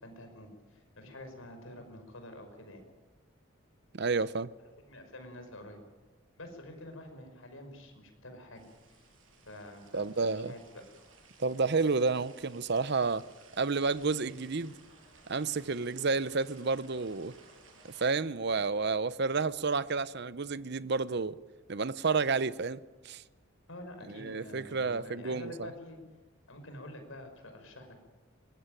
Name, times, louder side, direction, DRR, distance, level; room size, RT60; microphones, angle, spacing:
voice 1, 0.0-2.8 4.8-5.8 6.4-9.1 9.5-10.8 23.7-26.0 26.5-28.0, left 1 dB, 80° left, 5.5 m, -47 dB
voice 2, 3.9-4.5 9.9-10.5 11.4-13.2 13.6-14.8 15.3-17.3 17.8-21.4 21.7-22.8 23.0-23.2 24.1-25.7, right 4 dB, 55° right, 0.7 m, -30 dB
sound 1, 8.6-18.2, right 4 dB, 70° right, 7.3 m, -59 dB
23.0 x 19.5 x 9.1 m
head